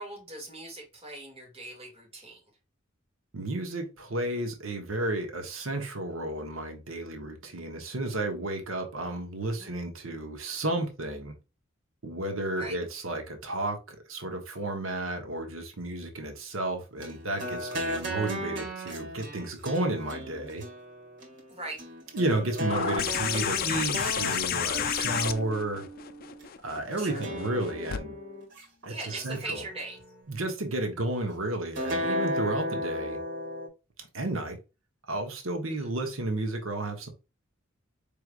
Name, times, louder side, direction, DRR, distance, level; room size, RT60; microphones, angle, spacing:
voice 1, 0.0-2.4 9.5-9.7 12.6-12.8 21.5-21.8 27.0-27.3 28.9-30.0 35.7-35.9, right 2 dB, 30° right, 2.2 m, -40 dB
voice 2, 3.3-11.3 12.0-20.6 22.1-25.8 26.6-28.2 28.8-29.6 30.3-33.2 34.0-34.6 35.1-37.1, right 2 dB, 85° right, 1.2 m, -32 dB
sound 1, 17.0-26.5 27.1-28.6 29.1-30.2 31.7-33.7, equal, 60° right, 2.2 m, -35 dB
sound 2, 22.7-28.0 29.4-29.5, left 9 dB, 45° left, 0.4 m, -31 dB
4.6 x 3.4 x 2.5 m
head